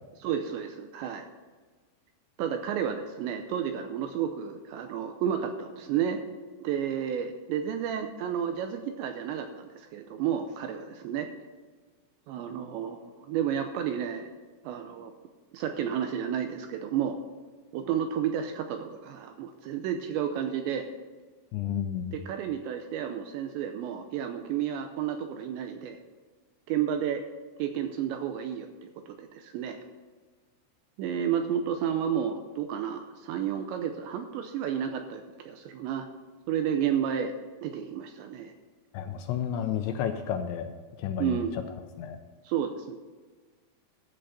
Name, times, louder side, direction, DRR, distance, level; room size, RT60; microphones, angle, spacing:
voice 1, 0.2-1.3 2.4-6.2 6.6-11.3 12.3-14.3 14.7-15.1 15.5-17.2 17.7-20.9 22.1-26.0 26.7-27.2 27.6-29.8 31.0-36.1 36.5-37.3 37.6-38.5 41.2-41.5 42.4-43.0, right 9 dB, 85° right, 6 dB, 2.6 m, -31 dB
voice 2, 21.5-22.2 38.9-40.7 41.0-41.4 42.0-42.2, left 9 dB, 85° left, 6 dB, 2.7 m, -31 dB
13.0 x 7.8 x 5.7 m, 1.4 s
omnidirectional pair, 5.7 m